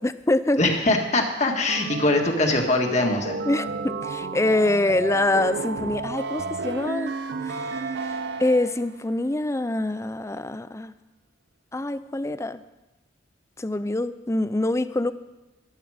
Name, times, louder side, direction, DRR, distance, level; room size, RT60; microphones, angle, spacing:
voice 1, 0.0-0.6 3.5-7.2 7.4-10.9 11.7-12.6 13.6-15.1, left 2 dB, 15° left, 13 dB, 0.4 m, -25 dB
voice 2, 0.6-3.4, left 2 dB, 35° left, 2 dB, 1.8 m, -22 dB
sound 1, 1.7-9.0, right 3 dB, 60° right, 0.5 m, -32 dB
14.5 x 11.5 x 5.0 m, 1.0 s
head